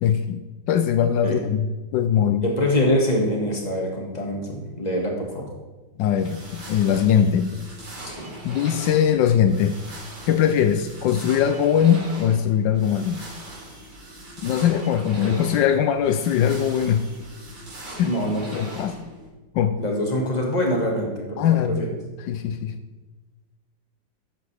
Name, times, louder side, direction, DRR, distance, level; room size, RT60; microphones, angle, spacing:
voice 1, 0.0-2.4 6.0-7.5 8.4-9.8 10.3-13.2 14.4-17.1 18.0-18.1 18.5-19.1 19.5-19.8 21.4-22.0 22.3-22.8, left 9 dB, 80° left, 9 dB, 1.3 m, -21 dB
voice 2, 2.4-5.5 8.1-8.3 18.0-18.5 19.8-21.9, left 1 dB, 20° left, 0 dB, 1.9 m, -24 dB
sound 1, 6.1-19.3, right 1 dB, 85° right, 3.9 m, -40 dB
12.5 x 8.4 x 3.4 m, 1.2 s
omnidirectional pair, 2.0 m